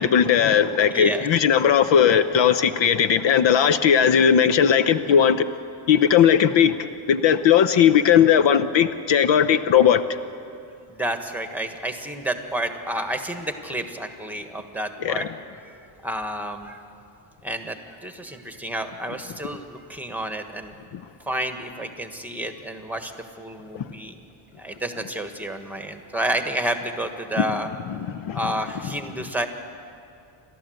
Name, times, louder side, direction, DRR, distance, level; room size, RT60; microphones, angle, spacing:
voice 1, 0.0-5.5 5.9-6.8 7.1-10.0 15.0-15.3 20.9-21.0 23.7-23.9 27.3-27.4 27.9-28.4, left 8 dB, 65° left, 12 dB, 0.8 m, -18 dB
voice 2, 0.9-1.2 10.9-15.2 16.0-16.8 17.4-20.7 21.3-23.1 23.4-24.1 24.6-27.7 28.3-29.5, right 1 dB, 5° right, 6 dB, 1.4 m, -30 dB
29.5 x 13.0 x 7.9 m, 2.6 s
cardioid pair, 130°, 48 cm